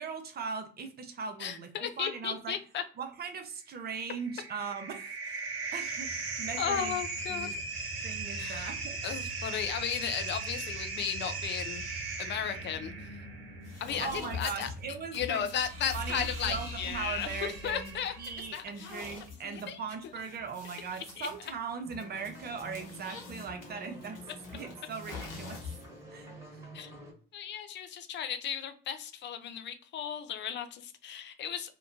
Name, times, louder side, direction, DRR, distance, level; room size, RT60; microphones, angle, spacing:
voice 1, 0.0-1.7 2.0-2.6 3.0-7.0 7.3-7.6 8.0-9.0 14.0-15.5 15.9-24.2 24.5-25.7 26.1-26.7, right 5 dB, 35° right, 6 dB, 0.6 m, -39 dB
voice 2, 1.4-2.8 6.6-7.6 8.4-8.7 9.0-11.8 12.2-13.1 13.8-14.7 15.1-18.1 18.5-18.9 19.4-19.8 21.2-21.3 26.7-26.9 27.3-31.7, left 9 dB, 40° left, 9 dB, 0.5 m, -35 dB
sound 1, 4.0-18.5, right 3 dB, 85° right, 0.6 m, -39 dB
sound 2, 13.6-26.0, left 5 dB, 60° left, 1.0 m, -47 dB
sound 3, 21.8-27.1, equal, 10° right, 1.3 m, -48 dB
2.8 x 2.2 x 2.5 m, 0.40 s
hypercardioid pair, 55°, 29 cm